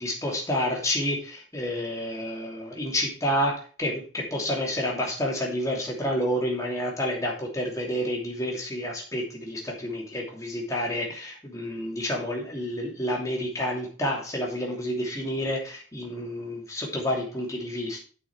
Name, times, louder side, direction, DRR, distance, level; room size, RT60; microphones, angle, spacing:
voice 1, 0.0-18.0, equal, 15° left, -2 dB, 2.8 m, -29 dB
8.8 x 6.2 x 4.8 m, 0.39 s
head